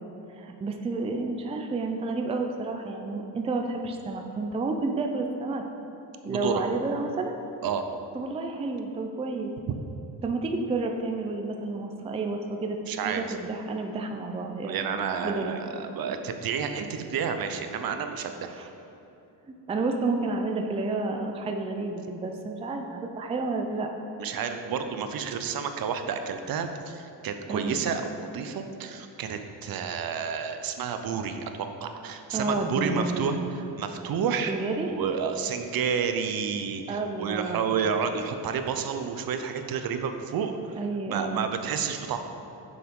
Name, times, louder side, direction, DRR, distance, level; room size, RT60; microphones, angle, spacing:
voice 1, 0.4-5.6 6.2-7.4 8.1-9.5 10.2-15.0 15.2-15.5 18.5-18.7 19.5-23.9 27.5-27.8 32.3-33.4 34.5-34.9 36.9-37.7 40.8-41.5, right 3 dB, 15° right, 3 dB, 0.4 m, -30 dB
voice 2, 6.2-6.6 7.6-7.8 12.9-13.2 14.7-18.5 24.2-34.5 34.9-40.8 41.1-42.2, right 6 dB, 55° right, 7 dB, 0.7 m, -30 dB
9.9 x 7.1 x 3.7 m, 2.9 s
cardioid pair, 155°, 43 cm